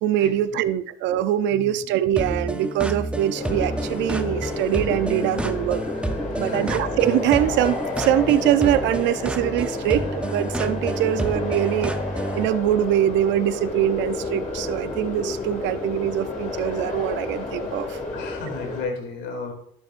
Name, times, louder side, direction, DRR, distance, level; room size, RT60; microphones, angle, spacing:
voice 1, 0.0-5.8 6.4-11.9 12.4-18.0, right 11 dB, 70° right, 13 dB, 0.5 m, -23 dB
sound 1, 2.2-12.5, right 2 dB, 5° right, 0.6 m, -29 dB
sound 2, 3.3-18.8, left 3 dB, 40° left, 2.2 m, -31 dB
voice 2, 6.4-6.8 18.1-19.5, left 4 dB, 70° left, 3 dB, 2.5 m, -33 dB
12.0 x 7.2 x 2.5 m, 0.67 s
cardioid pair, 105°, 20 cm